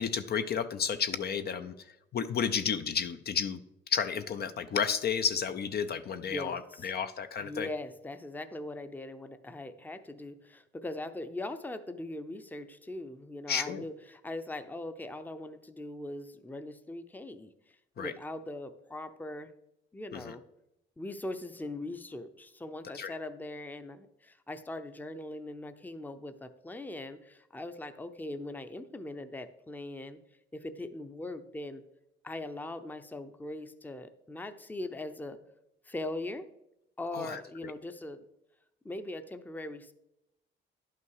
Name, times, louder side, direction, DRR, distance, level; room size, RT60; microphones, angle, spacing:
voice 1, 0.0-1.7 2.1-3.6 3.9-7.7 13.5-13.8 18.0-18.1 20.1-20.3 22.9-23.1 37.1-37.7, left 7 dB, 55° left, 10 dB, 0.6 m, -32 dB
voice 2, 6.3-6.9 7.4-17.5 18.0-19.5 19.9-20.4 21.0-30.2 30.5-31.8 32.2-35.4 35.9-36.5 37.0-38.2 38.8-39.9, left 2 dB, 10° left, 9 dB, 0.6 m, -40 dB
10.5 x 5.8 x 4.7 m, 0.85 s
cardioid pair, 90°, 20 cm